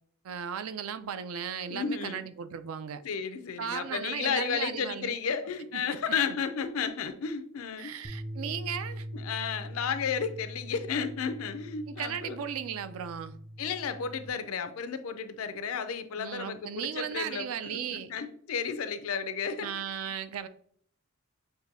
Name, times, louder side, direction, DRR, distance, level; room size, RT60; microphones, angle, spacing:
voice 1, 0.2-3.0 3.6-5.2 5.7-5.8 6.3-6.4 7.8-9.1 11.9-13.4 16.2-18.1 19.6-20.5, right 8 dB, 80° right, 12 dB, 0.4 m, -36 dB
voice 2, 1.7-2.2 3.0-7.9 9.1-12.4 13.6-19.7, left 6 dB, 85° left, 10 dB, 0.5 m, -33 dB
sound 1, 8.0-14.3, equal, 30° right, 0.6 m, -42 dB
6.7 x 2.6 x 2.6 m, 0.62 s
head